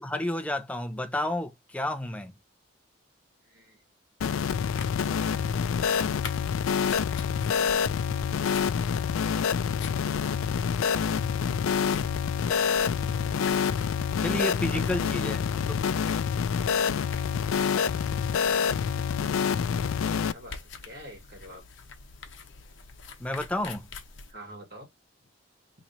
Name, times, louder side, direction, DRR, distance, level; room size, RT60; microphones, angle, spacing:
voice 1, 0.0-2.3 14.2-15.8 23.2-23.8, left 1 dB, 5° left, 0.5 m, -31 dB
voice 2, 3.4-3.8 4.9-6.0 7.1-8.3 12.7-13.5 14.4-15.3 20.2-21.6 24.3-24.9 25.2-25.3, equal, 50° right, 1.7 m, -49 dB
sound 1, 4.2-20.3, left 7 dB, 80° left, 0.3 m, -27 dB
sound 2, 4.7-24.3, left 4 dB, 65° left, 0.8 m, -46 dB
3.0 x 2.7 x 4.2 m
head